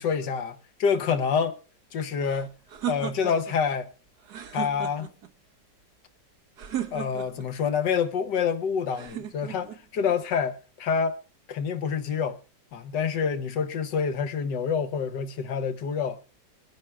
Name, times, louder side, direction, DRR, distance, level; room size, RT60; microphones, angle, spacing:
voice 1, 0.0-1.5 1.9-2.5 2.9-3.9 4.5-5.1 6.9-11.2 11.5-12.4 12.7-16.2, left 6 dB, 75° left, 1.6 m, -27 dB
sound 1, 2.2-3.6 4.2-5.3 6.6-7.5 8.9-9.8, right 11 dB, 65° right, 1.7 m, -35 dB
23.0 x 10.0 x 3.4 m
omnidirectional pair, 1.9 m